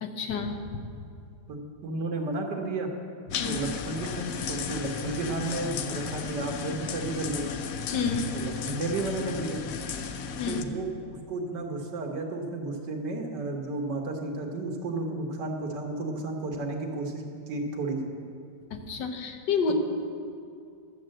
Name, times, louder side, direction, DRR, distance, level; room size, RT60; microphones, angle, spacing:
voice 1, 0.0-0.8 3.4-3.6 7.9-8.2 10.4-10.6 18.7-19.7, left 5 dB, 90° left, 5 dB, 1.7 m, -29 dB
voice 2, 1.5-2.9 3.4-7.4 8.3-9.6 10.5-18.0, right 2 dB, 85° right, 2 dB, 2.0 m, -32 dB
sound 1, 3.3-10.6, left 6 dB, 65° left, 1.0 m, -34 dB
12.0 x 7.4 x 7.6 m, 2.4 s
omnidirectional pair, 1.8 m